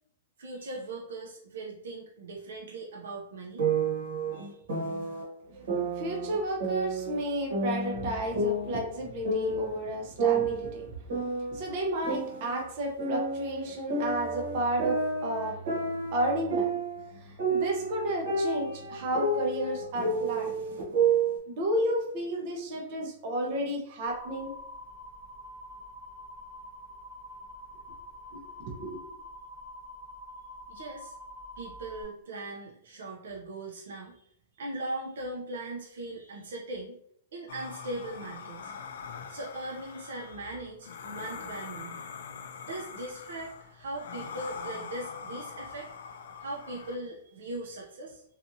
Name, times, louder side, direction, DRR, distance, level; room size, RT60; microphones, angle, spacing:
voice 1, 0.4-3.6 4.3-4.6 30.7-31.1 31.6-34.2 34.6-37.0 37.3-38.8 39.3-42.0 42.6-45.9 46.4-48.2, right 2 dB, 80° right, -2 dB, 0.5 m, -39 dB
sound 1, 3.6-5.2 5.7-7.2 7.5-9.8 10.2-12.6 13.0-17.1 17.4-21.4, right 3 dB, 60° right, 1.1 m, -30 dB
voice 2, 5.5-11.0 11.2-16.7 17.1-20.5 21.5-24.5 28.3-28.4 28.7-29.0, right 1 dB, 30° right, 0 dB, 0.6 m, -32 dB
sound 2, 24.0-32.0, left 1 dB, 5° right, 0.9 m, -46 dB
sound 3, 37.5-47.0, left 6 dB, 60° left, 0.3 m, -43 dB
2.7 x 2.4 x 2.6 m, 0.69 s
hypercardioid pair, 180°, 0 cm